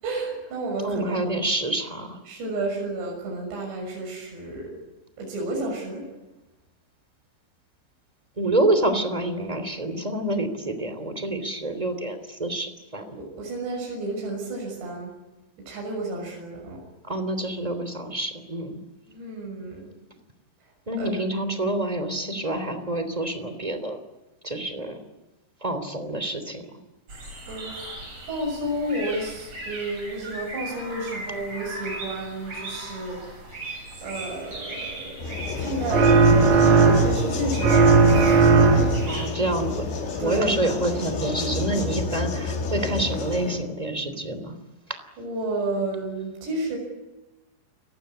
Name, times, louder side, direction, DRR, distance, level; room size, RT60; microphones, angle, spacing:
voice 1, 0.0-1.3 2.3-4.7 5.2-6.1 13.2-15.1 15.7-16.8 19.1-19.9 21.0-21.4 27.5-27.8 28.3-33.4 34.0-38.5 39.0-39.2 40.2-40.5 45.2-46.8, right 2 dB, 65° right, 0 dB, 8.3 m, -31 dB
voice 2, 0.8-2.2 8.4-13.2 17.0-18.8 20.9-24.0 24.4-25.0 25.6-26.7 39.0-44.6, right 1 dB, 10° right, 9 dB, 2.3 m, -27 dB
sound 1, 27.1-39.3, right 2 dB, 35° right, 8.5 m, -38 dB
sound 2, 35.2-43.6, left 4 dB, 80° left, 6.0 m, -30 dB
sound 3, 35.9-37.3 37.6-39.1, right 4 dB, 50° right, 5.7 m, -16 dB
30.0 x 17.5 x 9.9 m, 1.1 s
omnidirectional pair, 5.3 m